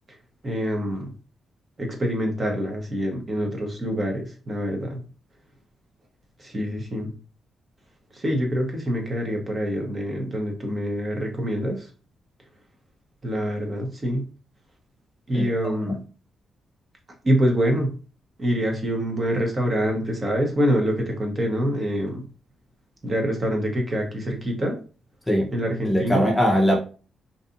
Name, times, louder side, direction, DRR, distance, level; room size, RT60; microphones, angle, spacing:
voice 1, 0.4-1.1 1.8-5.0 6.4-7.1 8.2-11.8 13.2-14.3 15.3-16.0 17.2-17.9 18.4-22.2 23.0-24.8 25.5-26.3, equal, 35° right, 0.8 m, -25 dB
voice 2, 25.8-26.8, equal, 10° left, 0.6 m, -21 dB
2.6 x 2.4 x 2.5 m
cardioid pair, 85°, 0 cm